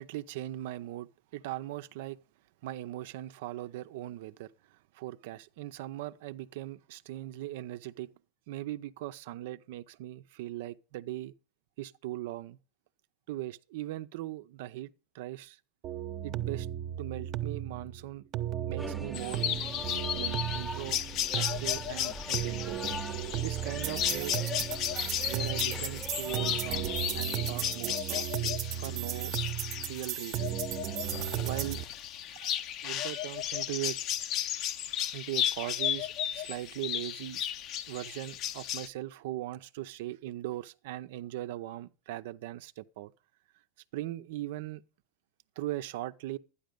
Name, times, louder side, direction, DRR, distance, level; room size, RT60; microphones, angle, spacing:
voice 1, 0.0-2.2 2.6-4.5 4.9-8.1 8.5-11.3 11.8-12.6 13.3-15.6 16.2-16.7 17.0-18.2 18.7-19.5 20.1-22.8 23.4-24.3 25.3-29.4 29.8-30.5 31.1-31.8 32.4-32.5 32.8-34.0 35.1-37.4 37.9-43.1 43.9-44.8 45.6-46.4, right 15 dB, 70° right, 0.6 m, -39 dB
sound 1, 15.8-31.8, right 12 dB, 45° right, 0.9 m, -35 dB
sound 2, 18.8-27.2, left 1 dB, 5° left, 0.9 m, -44 dB
sound 3, 19.1-38.9, left 10 dB, 50° left, 0.8 m, -34 dB
11.5 x 10.0 x 5.1 m
supercardioid pair, 115°, 0 cm